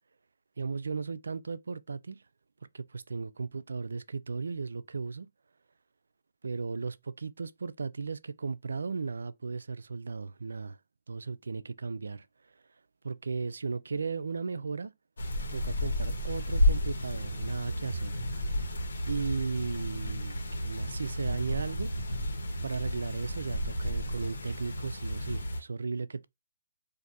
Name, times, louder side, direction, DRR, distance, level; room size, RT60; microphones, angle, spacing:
voice 1, 0.6-2.2 2.7-5.3 6.4-10.8 11.1-12.3 13.0-14.9 15.5-18.2 19.1-21.9 22.6-26.3, right 4 dB, 80° right, 0.3 m, -36 dB
sound 1, 15.2-25.6, equal, 75° left, 1.1 m, -32 dB
2.5 x 2.4 x 4.0 m
hypercardioid pair, 165°, 0 cm